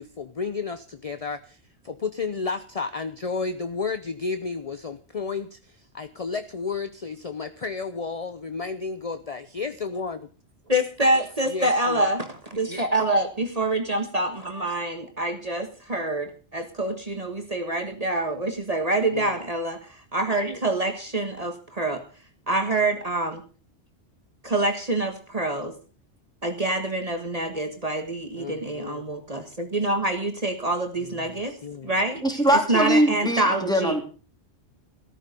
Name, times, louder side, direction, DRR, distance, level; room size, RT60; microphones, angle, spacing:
voice 1, 0.0-1.6 1.8-10.3 11.5-12.1 19.1-19.4 28.3-29.0 30.9-32.0, left 4 dB, 35° left, 10 dB, 0.8 m, -32 dB
voice 2, 10.7-22.0 22.5-23.4 24.4-25.7 26.4-31.5 31.8-32.2 32.5-34.0, right 2 dB, 35° right, 6 dB, 1.7 m, -26 dB
voice 3, 32.2-34.0, right 1 dB, 5° left, 3 dB, 3.2 m, -22 dB
14.0 x 14.0 x 5.3 m, 0.37 s
omnidirectional pair, 1.1 m